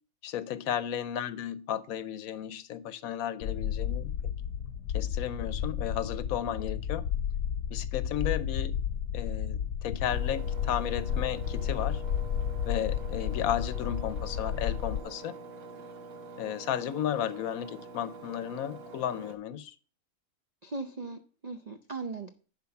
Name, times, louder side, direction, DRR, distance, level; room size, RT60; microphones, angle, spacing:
voice 1, 0.2-4.1 4.9-7.1 7.7-8.7 9.1-12.0 12.7-15.4 16.4-19.7, left 10 dB, 70° left, 1.0 m, -34 dB
sound 1, 3.4-15.0, left 9 dB, 90° left, 1.2 m, -32 dB
Engine, 10.1-19.3, right 4 dB, 65° right, 1.9 m, -45 dB
voice 2, 20.6-22.3, right 3 dB, 80° right, 0.3 m, -38 dB
10.5 x 4.5 x 5.7 m
omnidirectional pair, 1.6 m